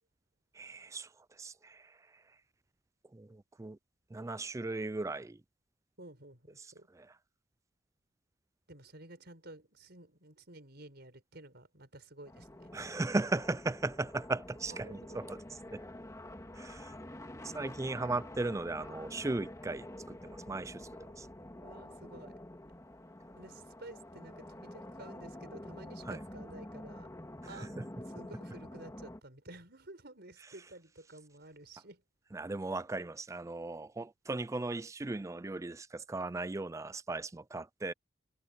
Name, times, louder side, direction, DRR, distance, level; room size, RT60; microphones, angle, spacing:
voice 1, 0.5-2.2 3.1-3.8 4.1-5.4 6.6-6.7 6.9-7.1 12.7-15.4 15.7-15.8 16.5-16.9 17.4-21.3 26.1-26.2 27.5-27.9 32.3-37.9, right 2 dB, 15° right, 0.4 m, -37 dB
voice 2, 6.0-6.9 8.7-12.7 14.7-15.4 17.4-17.6 21.6-22.4 23.4-27.1 27.5-32.0, right 2 dB, 55° right, 6.3 m, -52 dB
sound 1, 12.3-29.2, left 1 dB, 15° left, 2.0 m, -48 dB
head